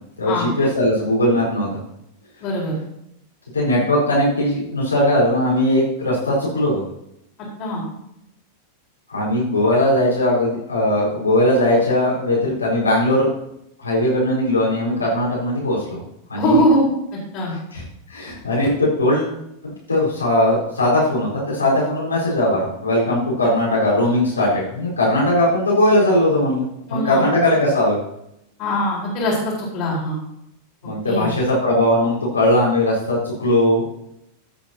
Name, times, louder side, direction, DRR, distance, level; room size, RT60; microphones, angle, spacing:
voice 1, 0.2-1.8 3.5-6.8 9.1-13.3 13.8-16.0 16.3-16.6 17.7-17.8 18.1-19.3 19.6-28.0 30.8-33.9, left 1 dB, 75° left, -6 dB, 4.6 m, -19 dB
voice 2, 2.4-2.7 7.6-7.8 16.4-16.8 17.1-17.5 26.9-27.3 28.6-30.2 31.0-31.3, equal, 40° left, -4 dB, 4.5 m, -21 dB
14.5 x 8.6 x 2.9 m, 0.80 s
figure-of-eight pair, 90°, 0 cm